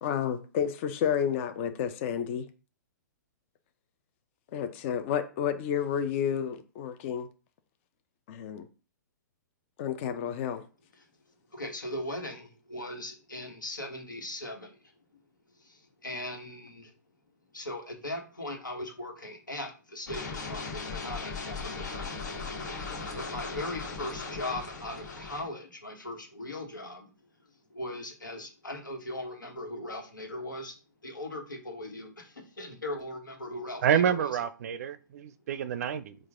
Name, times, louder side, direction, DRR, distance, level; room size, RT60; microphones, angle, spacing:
voice 1, 0.0-2.5 4.5-7.3 8.3-8.7 9.8-10.6, left 8 dB, 40° left, 0.5 m, -30 dB
voice 2, 11.5-14.8 15.6-16.9 17.5-22.1 22.5-27.1 27.7-30.8 31.0-34.4, left 1 dB, 90° left, 1.3 m, -39 dB
sound 1, 20.1-25.4, left 4 dB, 70° left, 1.5 m, -38 dB
voice 3, 33.8-36.2, right 8 dB, 55° right, 0.4 m, -28 dB
4.6 x 2.4 x 3.6 m
figure-of-eight pair, 125°, 10 cm